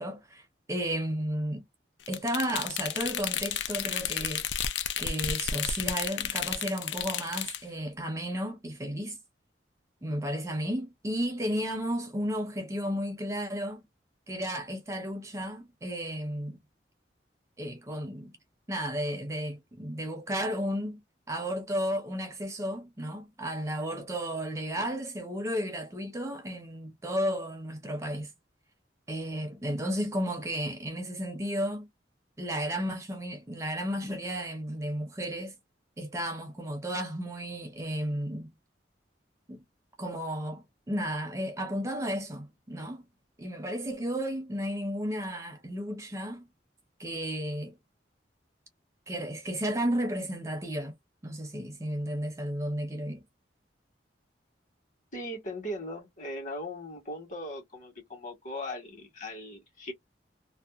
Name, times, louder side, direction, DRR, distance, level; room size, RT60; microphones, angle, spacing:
voice 1, 0.0-1.6 2.1-4.5 5.0-9.2 10.0-13.8 14.3-16.6 17.6-18.3 18.7-21.0 21.3-28.3 29.1-31.9 32.4-35.6 36.0-38.5 39.5-39.6 40.0-43.0 43.4-46.5 47.0-47.7 49.1-50.9 51.2-53.2, equal, 15° right, 0.5 m, -33 dB
sound 1, 2.1-7.6, left 9 dB, 85° left, 0.4 m, -32 dB
voice 2, 55.1-59.9, left 1 dB, 45° left, 1.4 m, -39 dB
2.7 x 2.0 x 2.3 m
head